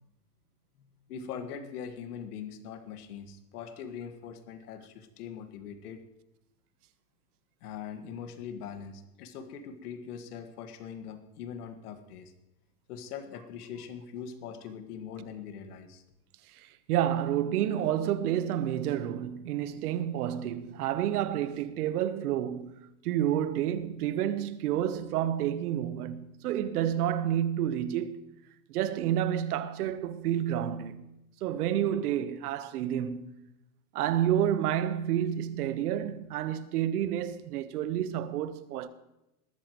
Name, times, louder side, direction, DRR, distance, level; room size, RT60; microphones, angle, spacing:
voice 1, 0.8-6.0 7.6-12.3 12.9-16.0, left 7 dB, 75° left, 1.9 m, -42 dB
voice 2, 16.6-22.8 23.0-28.2 28.7-31.0 31.4-33.3 33.9-38.9, right 11 dB, 70° right, 1.2 m, -29 dB
20.5 x 13.5 x 3.1 m
supercardioid pair, 165°, 47 cm